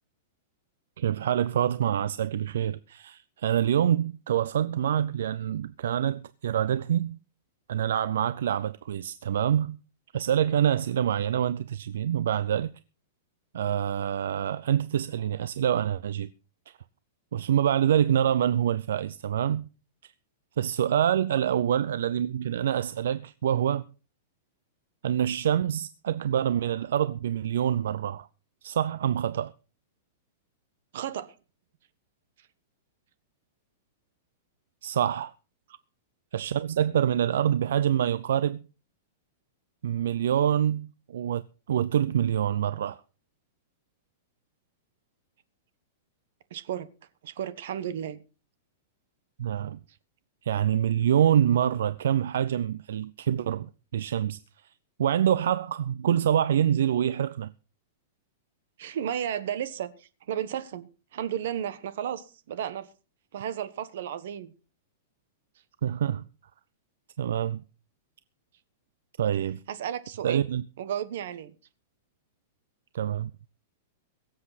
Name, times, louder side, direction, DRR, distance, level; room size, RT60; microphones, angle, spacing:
voice 1, 1.0-7.2 7.7-9.8 10.1-12.7 13.5-16.3 16.7-16.8 17.3-19.7 20.0-20.1 20.6-23.8 25.0-28.3 28.6-29.5 34.8-35.3 36.3-38.7 39.8-41.4 41.7-43.0 49.4-49.8 50.4-54.4 55.0-57.5 65.8-66.2 67.2-67.6 69.2-69.6 70.2-70.6 72.9-73.3, right 10 dB, 70° right, 0.5 m, -26 dB
voice 2, 30.9-31.3 46.5-46.9 47.2-48.2 58.8-62.9 63.3-64.5 69.7-70.4 70.8-71.5, right 10 dB, 55° right, 1.2 m, -33 dB
23.0 x 7.7 x 4.1 m
supercardioid pair, 180°, 0 cm